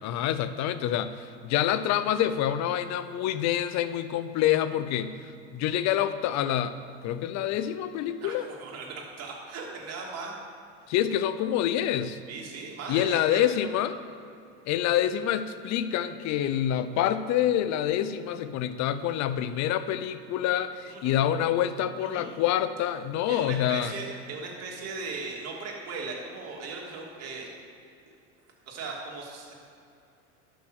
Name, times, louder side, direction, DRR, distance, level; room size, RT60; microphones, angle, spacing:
voice 1, 0.0-5.2 5.5-6.8 7.0-8.5 10.9-12.2 12.9-14.0 14.7-23.9, left 11 dB, 50° left, 13 dB, 0.8 m, -27 dB
voice 2, 8.2-10.3 12.3-13.4 20.9-21.2 22.0-22.3 23.3-27.5 28.7-29.5, right 4 dB, 45° right, -2 dB, 2.9 m, -38 dB
11.5 x 6.4 x 6.5 m, 2.5 s
supercardioid pair, 105°, 34 cm